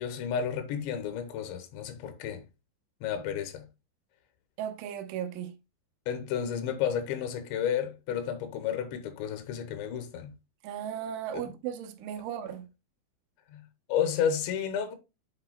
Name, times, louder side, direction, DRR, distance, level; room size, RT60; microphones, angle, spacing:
voice 1, 0.0-2.4 3.0-3.7 6.1-10.3 11.3-11.5 13.5-13.6 13.9-15.0, left 8 dB, 80° left, 3.2 m, -31 dB
voice 2, 4.6-5.6 10.6-12.7, right 9 dB, 90° right, 3.4 m, -36 dB
8.7 x 5.5 x 2.2 m
omnidirectional pair, 5.3 m